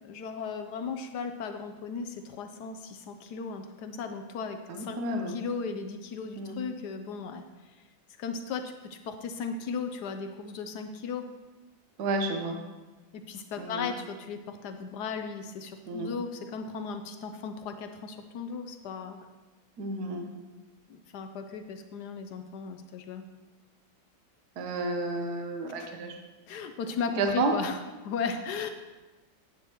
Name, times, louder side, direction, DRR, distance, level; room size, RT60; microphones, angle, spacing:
voice 1, 0.0-5.0 5.3-7.4 8.2-11.3 13.1-19.3 20.9-23.3 25.8-25.9 26.5-27.8 28.0-28.7, left 5 dB, 70° left, 7 dB, 1.0 m, -36 dB
voice 2, 4.7-5.4 6.4-6.6 12.0-12.6 13.6-13.9 15.9-16.1 19.8-20.3 24.6-26.2 27.2-27.5, right 2 dB, 60° right, 3 dB, 1.3 m, -31 dB
9.8 x 8.2 x 2.9 m, 1.2 s
omnidirectional pair, 2.2 m